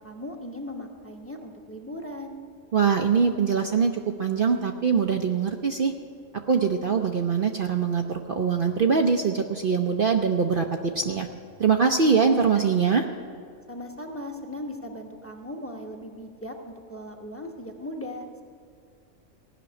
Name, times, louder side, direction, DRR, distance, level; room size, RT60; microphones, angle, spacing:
voice 1, 0.0-2.3 13.7-18.4, left 1 dB, 10° left, 3 dB, 0.9 m, -38 dB
voice 2, 2.7-5.9 6.5-10.7 10.9-11.3 11.6-13.1, right 6 dB, 55° right, 4 dB, 0.7 m, -23 dB
16.0 x 6.0 x 9.6 m, 2.2 s
omnidirectional pair, 1.3 m